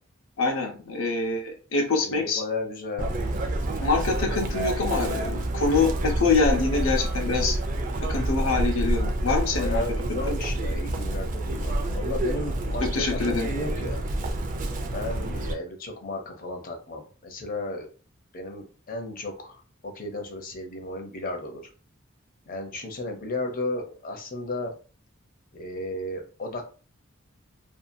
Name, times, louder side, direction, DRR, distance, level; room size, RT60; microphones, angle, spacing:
voice 1, 0.4-2.4 3.8-7.6 8.1-9.8 10.1-10.4 12.9-13.5, left 3 dB, 85° left, 1 dB, 0.8 m, -25 dB
voice 2, 2.0-3.1 9.5-14.0 14.9-17.9 18.3-21.7 22.5-24.7 25.5-26.6, left 2 dB, 45° left, 4 dB, 0.6 m, -34 dB
Chirp tweet, 3.0-15.5, right 1 dB, 40° right, 0.4 m, -28 dB
2.7 x 2.3 x 2.6 m, 0.38 s
head